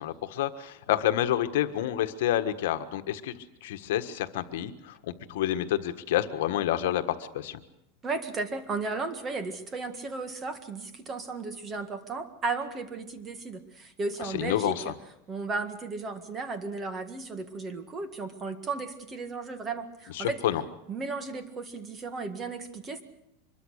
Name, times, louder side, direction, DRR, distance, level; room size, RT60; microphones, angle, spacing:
voice 1, 0.0-3.3 3.6-7.6 14.2-14.9 20.1-20.6, left 12 dB, 70° left, 9 dB, 1.5 m, -29 dB
voice 2, 8.0-14.9 15.3-20.4 20.9-23.0, right 3 dB, 20° right, 9 dB, 1.8 m, -35 dB
24.5 x 22.0 x 6.5 m, 0.84 s
supercardioid pair, 160°, 0 cm